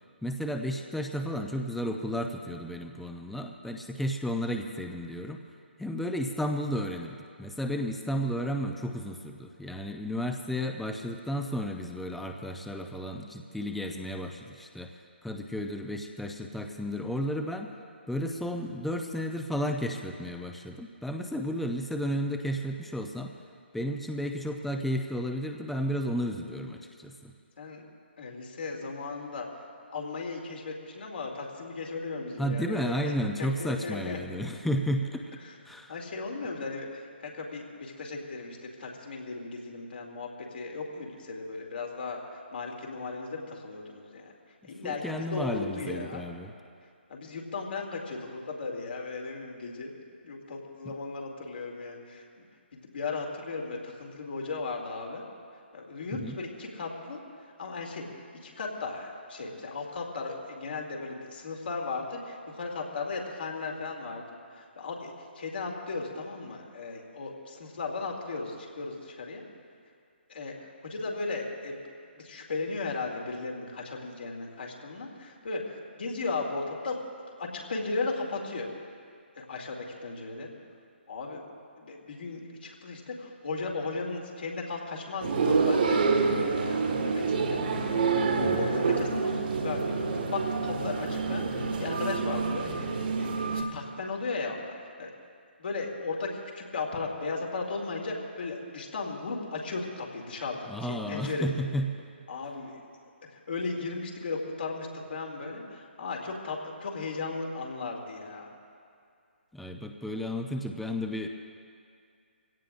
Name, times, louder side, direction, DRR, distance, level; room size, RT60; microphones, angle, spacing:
voice 1, 0.2-5.4 5.8-14.9 15.2-17.8 18.1-23.4 23.7-27.3 32.4-35.2 35.6-36.0 44.8-46.5 56.1-56.4 88.5-88.7 100.7-101.9 109.5-111.3, equal, ahead, 3 dB, 0.6 m, -33 dB
voice 2, 27.6-27.9 28.2-29.6 29.9-33.1 33.4-34.2 35.4-35.6 35.9-44.3 44.6-46.2 47.1-49.9 50.2-52.4 52.7-55.2 55.7-57.2 57.6-69.4 70.3-71.8 72.2-77.1 77.4-78.7 79.4-80.5 81.1-81.4 81.8-86.0 86.3-90.0 90.3-93.3 93.5-95.1 95.6-101.6 102.3-102.8 103.3-108.5, left 3 dB, 60° left, -1 dB, 2.5 m, -36 dB
sound 1, 85.2-93.6, right 4 dB, 50° right, 1.6 m, -27 dB
22.5 x 17.0 x 2.6 m, 2.3 s
figure-of-eight pair, 145°, 6 cm